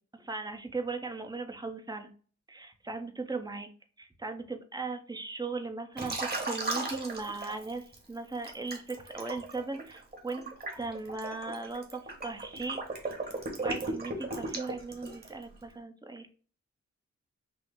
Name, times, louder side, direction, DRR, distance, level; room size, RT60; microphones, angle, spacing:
voice 1, 0.1-2.1 2.5-3.7 4.0-12.8 13.6-16.3, right 3 dB, 15° right, 5 dB, 0.7 m, -38 dB
Liquid, 6.0-8.0 8.4-15.4, right 2 dB, 35° right, 1.4 m, -36 dB
6.1 x 2.0 x 3.7 m, 0.41 s
wide cardioid pair, 110°, 29 cm